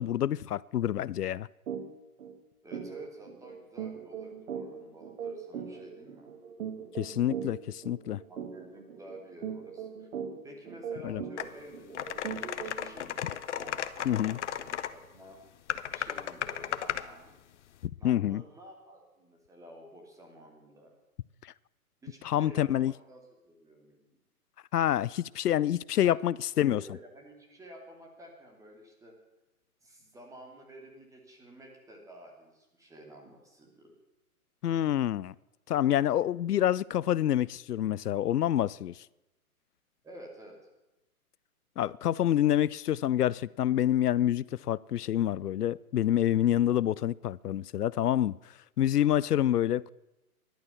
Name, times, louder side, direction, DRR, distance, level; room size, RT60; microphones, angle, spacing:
voice 1, 0.0-1.5 7.0-8.2 11.0-11.2 14.1-14.4 18.0-18.4 21.4-21.5 22.2-22.9 24.7-26.8 34.6-35.3 35.7-38.9 41.8-48.4 48.8-49.9, left 11 dB, 90° left, 0.5 m, -27 dB
sound 1, 1.7-1.8 2.2-2.3 2.7-12.9, right 7 dB, 55° right, 2.1 m, -40 dB
voice 2, 2.6-6.3 8.3-10.1 10.4-15.6 15.9-17.4 18.0-20.9 22.0-24.0 26.0-26.2 26.7-29.1 29.8-33.9 40.0-40.6, right 1 dB, 5° right, 2.7 m, -51 dB
sound 2, 11.4-11.5 11.9-14.9 15.7-17.1, left 10 dB, 50° left, 0.9 m, -35 dB
14.0 x 11.5 x 7.0 m
hypercardioid pair, 140°, 45 cm